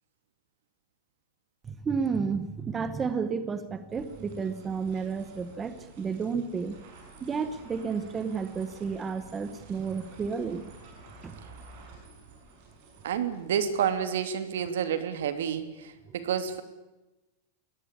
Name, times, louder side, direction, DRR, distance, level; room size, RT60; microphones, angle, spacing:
voice 1, 1.6-6.8 7.2-10.6 11.2-11.4, right 5 dB, 10° right, 11 dB, 0.9 m, -31 dB
sound 1, 3.9-13.9, right 3 dB, 40° right, 6.9 m, -51 dB
voice 2, 13.0-16.6, right 8 dB, 70° right, 10 dB, 3.0 m, -29 dB
22.0 x 18.5 x 8.6 m, 1.0 s
supercardioid pair, 180°, 0 cm